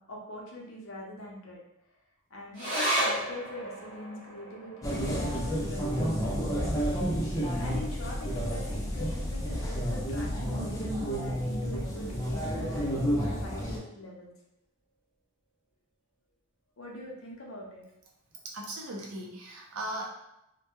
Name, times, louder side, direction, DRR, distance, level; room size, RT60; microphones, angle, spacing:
voice 1, 0.0-1.6 2.3-7.2 7.6-14.3 16.8-17.8, left 1 dB, 65° left, -2 dB, 0.6 m, -43 dB
sound 1, 2.5-9.3 9.6-9.7 10.1-10.7 11.3-11.4, right 1 dB, 30° right, 1.0 m, -36 dB
sound 2, 4.8-13.8, equal, 15° left, 0.3 m, -30 dB
voice 2, 18.4-20.1, right 1 dB, 75° right, -1 dB, 0.6 m, -38 dB
2.2 x 2.1 x 2.9 m, 0.86 s
head